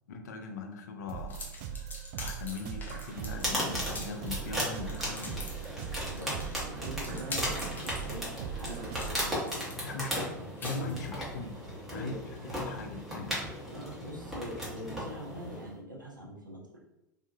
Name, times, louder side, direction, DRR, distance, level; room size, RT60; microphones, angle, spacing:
voice 1, 0.1-1.5 2.2-5.5 9.7-13.4, left 4 dB, 60° left, 5 dB, 0.4 m, -40 dB
sound 1, 1.1-9.4, right 9 dB, 45° right, 0.3 m, -40 dB
sound 2, 1.3-11.3, left 2 dB, 20° left, 0.6 m, -44 dB
sound 3, 3.1-15.7, equal, ahead, 1.0 m, -37 dB
voice 2, 6.0-9.7 10.1-10.3 10.6-11.1 11.9-12.2 13.7-16.7, equal, 90° right, -3 dB, 0.7 m, -43 dB
2.6 x 2.3 x 2.6 m, 0.91 s
figure-of-eight pair, 90°, 10 cm